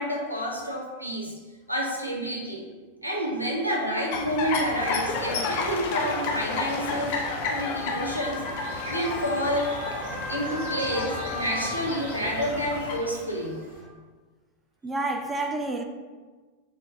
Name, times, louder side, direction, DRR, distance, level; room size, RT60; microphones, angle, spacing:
voice 1, 0.0-1.3 1.7-2.6 3.0-9.7 10.3-13.6, equal, 90° right, -2 dB, 0.8 m, -29 dB
sound 1, 4.1-13.0, left 3 dB, 50° left, 0.5 m, -31 dB
sound 2, 6.4-13.8, right 1 dB, 65° right, 1.1 m, -46 dB
sound 3, 7.5-13.9, left 1 dB, 20° left, 0.8 m, -37 dB
voice 2, 10.4-11.1 14.8-15.8, right 2 dB, 15° right, 5 dB, 0.3 m, -31 dB
3.7 x 3.3 x 3.3 m, 1.4 s
figure-of-eight pair, 90°, 0 cm